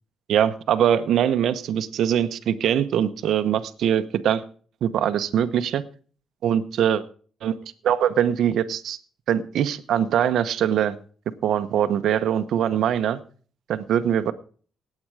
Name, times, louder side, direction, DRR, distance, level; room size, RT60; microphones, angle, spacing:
voice 1, 0.3-4.4 4.8-5.8 6.4-7.0 7.4-7.6 7.8-9.0 9.3-11.0 11.4-13.2 13.7-14.3, right 9 dB, 70° right, 10 dB, 1.0 m, -22 dB
18.0 x 8.7 x 4.9 m, 0.42 s
cardioid pair, 90°, 0 cm